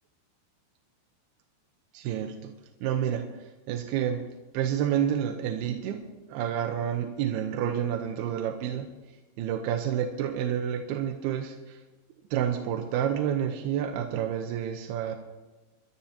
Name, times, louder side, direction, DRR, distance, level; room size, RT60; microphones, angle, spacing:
voice 1, 1.9-2.5 2.8-4.3 4.5-8.9 9.4-11.8 12.3-15.2, right 9 dB, 75° right, 4 dB, 2.5 m, -29 dB
23.5 x 12.5 x 2.9 m, 1.2 s
omnidirectional pair, 5.1 m